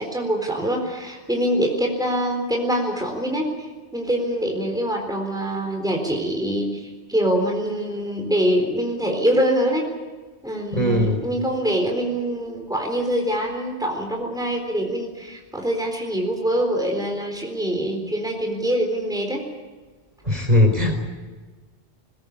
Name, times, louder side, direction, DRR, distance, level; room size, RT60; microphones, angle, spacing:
voice 1, 0.0-3.7 3.9-9.9 10.4-19.4, equal, 5° right, 2 dB, 4.0 m, -24 dB
voice 2, 10.7-11.2 20.3-21.0, left 1 dB, 35° right, 4 dB, 4.3 m, -19 dB
21.5 x 21.0 x 8.5 m, 1.3 s
omnidirectional pair, 1.1 m